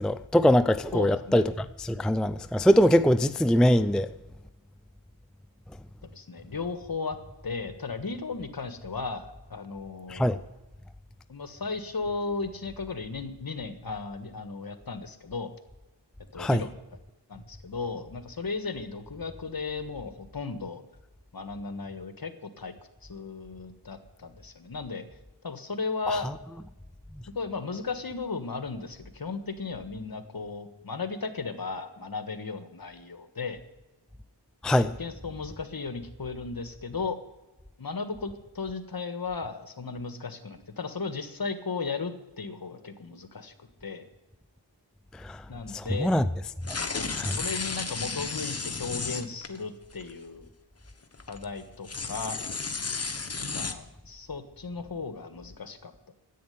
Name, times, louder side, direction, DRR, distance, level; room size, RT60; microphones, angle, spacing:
voice 1, 0.0-4.1 10.1-10.4 16.4-16.6 26.1-26.2 34.6-34.9 45.2-45.4 45.7-46.2 46.7-46.8 47.1-47.4, equal, ahead, 0.4 m, -23 dB
voice 2, 0.9-1.4 6.0-7.2 7.4-10.4 11.3-15.5 16.3-16.7 17.3-20.8 21.3-22.7 23.0-25.1 25.4-26.3 27.3-33.6 34.8-37.2 37.8-44.1 45.5-46.1 47.0-47.1 47.4-50.5 51.3-52.4 53.3-56.1, left 4 dB, 50° left, 1.5 m, -35 dB
sound 1, 46.6-49.6 49.9-50.1 51.0-51.4 51.8-53.7, left 4 dB, 35° left, 1.2 m, -33 dB
10.5 x 8.6 x 9.4 m
cardioid pair, 45°, 45 cm